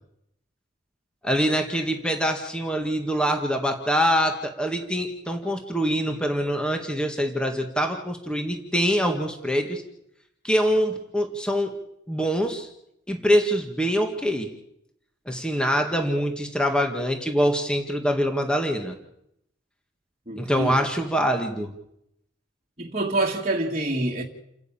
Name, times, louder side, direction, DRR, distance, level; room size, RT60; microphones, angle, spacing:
voice 1, 1.2-9.8 10.4-11.7 12.1-12.7 13.1-14.5 15.3-19.0 20.4-21.7, equal, 5° left, 1.8 m, -24 dB
voice 2, 20.3-20.8 22.8-24.2, right 2 dB, 30° right, 2.0 m, -26 dB
29.5 x 10.0 x 8.8 m
head